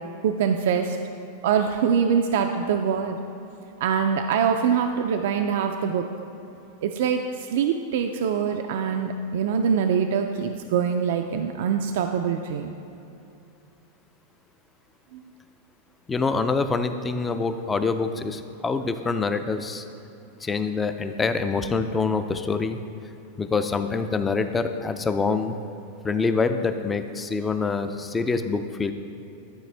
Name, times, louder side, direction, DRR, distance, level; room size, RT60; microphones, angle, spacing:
voice 1, 0.2-1.0 1.4-3.2 3.8-6.0 6.8-12.7 15.1-15.2, right 7 dB, 70° right, 5 dB, 0.3 m, -24 dB
voice 2, 16.1-19.8 20.4-22.8 23.4-25.6 26.0-28.9, left 4 dB, 10° left, 9 dB, 0.3 m, -25 dB
12.0 x 4.3 x 3.3 m, 2.9 s
supercardioid pair, 150°, 0 cm